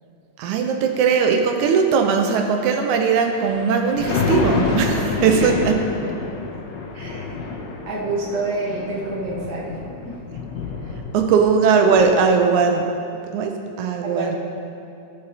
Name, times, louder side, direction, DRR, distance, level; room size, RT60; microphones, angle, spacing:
voice 1, 0.4-5.8 11.1-12.9 13.3-14.4, right 5 dB, 85° right, 4 dB, 2.1 m, -19 dB
Thunder, 3.2-11.6 12.0-12.1, left 4 dB, 85° left, 1.0 m, -27 dB
voice 2, 5.8-6.2 6.9-7.4 7.9-9.8 10.0-10.2 14.0-14.4, right 2 dB, 35° right, -5 dB, 2.0 m, -28 dB
15.5 x 6.8 x 4.1 m, 2.7 s
omnidirectional pair, 3.3 m